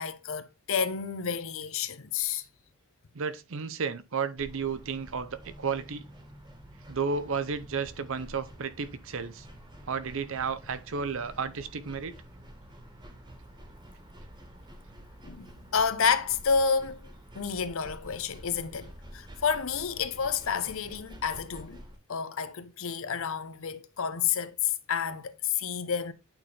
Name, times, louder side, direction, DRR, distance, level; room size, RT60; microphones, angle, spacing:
voice 1, 0.0-2.4 15.2-17.0 17.3-21.8 22.1-26.1, left 6 dB, 65° left, 0.6 m, -30 dB
voice 2, 3.1-6.0 6.9-9.5 9.9-12.1, right 5 dB, 65° right, 0.6 m, -32 dB
sound 1, 4.4-22.0, equal, 20° right, 1.4 m, -49 dB
8.9 x 4.3 x 3.4 m
head